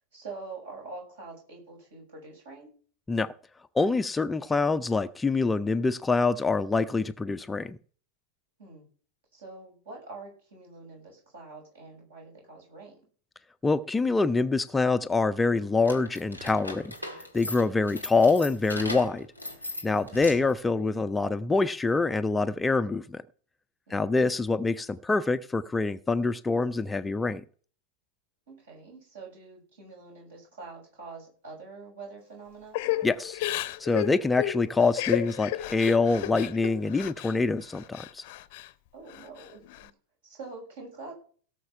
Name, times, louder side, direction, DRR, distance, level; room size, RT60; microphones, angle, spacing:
voice 1, 0.1-2.7 8.6-8.9 9.3-13.0 20.0-20.2 23.9-24.2 28.5-32.8 38.9-39.9 40.2-41.1, right 3 dB, 60° right, 6.7 m, -45 dB
voice 2, 3.7-7.8 13.6-16.9 17.3-19.3 19.8-23.2 23.9-27.4 33.0-33.4 33.8-38.2, left 3 dB, 10° left, 0.5 m, -25 dB
sound 1, 15.8-20.6, left 1 dB, 90° right, 1.9 m, -39 dB
Crying sobbing / Breathing, 32.7-37.4 37.7-38.7 39.1-39.9, left 14 dB, 50° left, 0.7 m, -33 dB
17.5 x 6.5 x 5.7 m
figure-of-eight pair, 90°, 0 cm